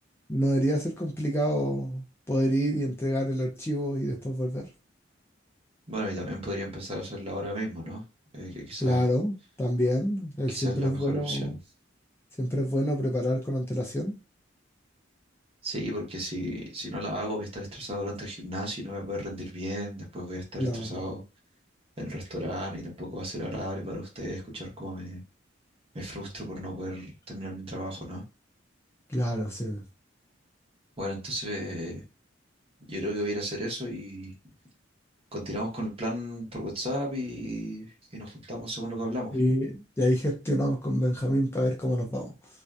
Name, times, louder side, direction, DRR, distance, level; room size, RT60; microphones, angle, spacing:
voice 1, 0.3-4.7 8.8-11.6 12.4-14.2 20.6-21.0 29.1-29.8 39.3-42.3, equal, 10° left, 0.4 m, -27 dB
voice 2, 5.9-8.0 8.3-9.0 10.5-11.5 15.6-21.2 22.0-25.2 25.9-28.2 31.0-32.0 32.9-34.3 35.3-39.4, equal, 30° right, 0.9 m, -34 dB
2.5 x 2.1 x 2.2 m
head